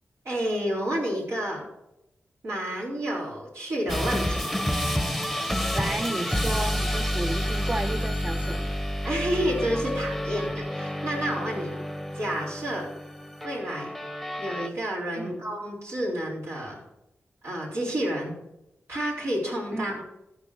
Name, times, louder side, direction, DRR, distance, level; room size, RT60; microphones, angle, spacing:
voice 1, 0.2-1.6 2.4-4.5 9.0-11.8 12.1-12.9 13.4-13.9 14.4-16.8 17.4-18.3 18.9-20.0, equal, 75° right, -4 dB, 4.0 m, -30 dB
sound 1, 3.9-14.7, equal, 5° right, 1.0 m, -29 dB
voice 2, 5.7-8.8 15.2-15.4 19.7-20.0, right 2 dB, 25° right, 8 dB, 0.6 m, -32 dB
13.5 x 4.9 x 6.4 m, 0.90 s
cardioid pair, 55°, 5 cm